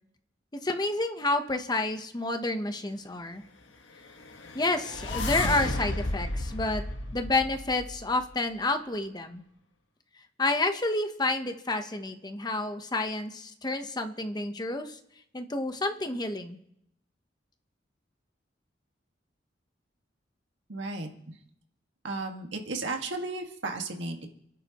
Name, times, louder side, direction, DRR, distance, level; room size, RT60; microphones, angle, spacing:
voice 1, 0.5-3.4 4.5-6.8 7.1-9.4 10.4-15.0 15.3-16.6, left 2 dB, 20° left, 7 dB, 1.0 m, -29 dB
sound 1, 4.1-8.3, left 2 dB, 85° left, 1.5 m, -33 dB
voice 2, 20.7-21.4 22.0-24.3, right 3 dB, 75° right, 3 dB, 1.9 m, -34 dB
29.5 x 11.5 x 3.0 m, 0.77 s
head